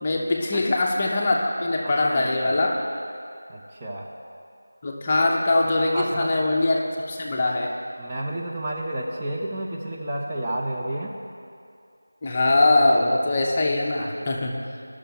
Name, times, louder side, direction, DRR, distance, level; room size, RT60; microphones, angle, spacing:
voice 1, 0.0-2.8 4.8-6.8 7.1-7.7 12.2-14.6, left 2 dB, 25° left, -1 dB, 0.7 m, -22 dB
voice 2, 1.8-2.5 3.5-4.1 5.9-6.5 8.0-11.1 13.9-14.3, right 1 dB, 15° right, -4 dB, 0.6 m, -31 dB
12.0 x 6.2 x 4.5 m, 2.4 s
figure-of-eight pair, 170°, 0 cm